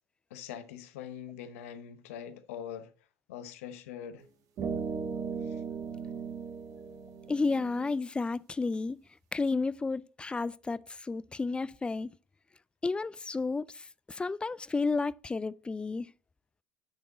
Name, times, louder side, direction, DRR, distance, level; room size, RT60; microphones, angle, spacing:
voice 1, 0.3-2.9 3.3-4.2 5.4-5.6, left 9 dB, 85° left, 0.8 m, -43 dB
sound 1, 4.2-4.3 4.6-8.0, right 6 dB, 50° right, 1.4 m, -37 dB
voice 2, 7.3-9.0 9.3-12.1 12.8-16.1, left 3 dB, 15° left, 0.3 m, -32 dB
10.0 x 3.6 x 4.0 m
supercardioid pair, 90°, 7 cm